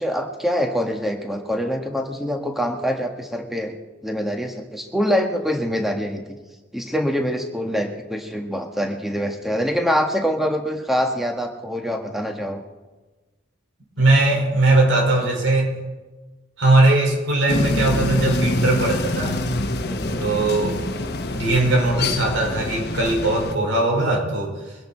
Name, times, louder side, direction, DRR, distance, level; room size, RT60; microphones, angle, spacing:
voice 1, 0.0-3.7 4.0-6.4 6.7-12.6 19.9-20.3, equal, ahead, 3 dB, 1.4 m, -25 dB
voice 2, 14.0-15.8 16.6-19.4 20.2-20.8 21.3-24.5, right 2 dB, 80° right, -1 dB, 5.2 m, -19 dB
sound 1, 17.5-23.6, left 2 dB, 55° left, 1.2 m, -25 dB
23.5 x 11.0 x 4.4 m, 1.2 s
head